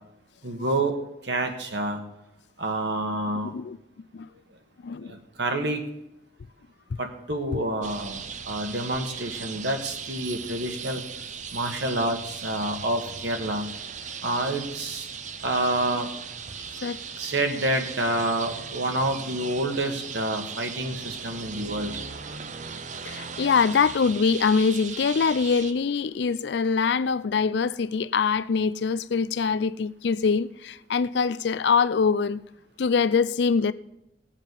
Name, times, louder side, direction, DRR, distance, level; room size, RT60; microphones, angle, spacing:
voice 1, 0.4-1.0 1.3-2.0 2.6-3.5 5.1-5.8 7.0-8.2 8.5-11.0 11.5-13.7 14.2-15.1 15.4-16.1 17.2-21.9, right 1 dB, 60° right, 1.6 m, -28 dB
voice 2, 4.8-5.1 16.8-17.0 23.0-32.4 32.8-33.7, left 5 dB, 60° left, 0.4 m, -24 dB
sound 1, 7.8-25.7, right 6 dB, 40° right, 0.6 m, -38 dB
18.0 x 7.4 x 5.3 m
head